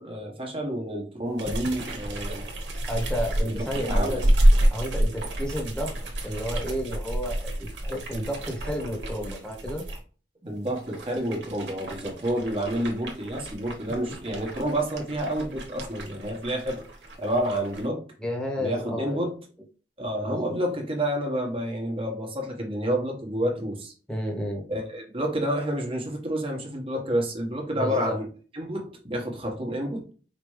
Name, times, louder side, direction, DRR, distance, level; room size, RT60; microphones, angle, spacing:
voice 1, 0.0-2.5 3.4-4.3 10.4-16.8 17.2-18.1 18.6-19.4 20.0-23.9 24.7-28.3 28.5-30.1, equal, 30° right, 1.4 m, -29 dB
sound 1, 1.4-10.0 10.6-17.9, right 1 dB, 80° right, 1.4 m, -28 dB
voice 2, 2.9-4.2 4.7-5.9 6.2-9.8 18.2-19.3 20.2-20.5 24.1-24.6 27.7-28.2, equal, 5° left, 1.3 m, -31 dB
5.1 x 3.0 x 3.2 m
head